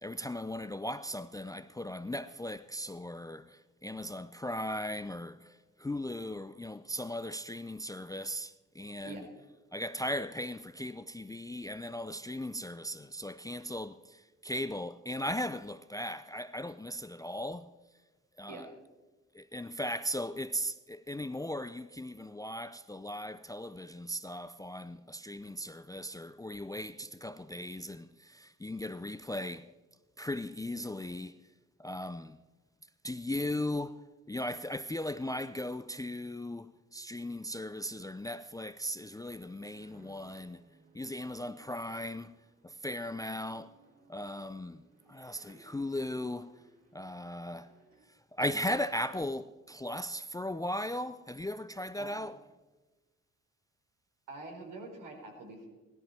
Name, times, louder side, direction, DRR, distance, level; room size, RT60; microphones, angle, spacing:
voice 1, 0.0-9.2 9.7-17.7 18.4-18.7 19.3-29.7 30.2-31.4 31.8-32.4 33.0-34.0 34.3-40.6 40.9-42.3 42.6-43.7 44.1-44.8 45.1-46.6 46.9-47.7 48.3-52.4, left 1 dB, 10° left, 0.5 m, -37 dB
sound 1, 39.1-48.1, right 3 dB, 45° right, 4.0 m, -63 dB
voice 2, 54.3-55.7, right 3 dB, 70° right, 4.2 m, -45 dB
17.0 x 13.5 x 4.5 m
supercardioid pair, 55°, 34 cm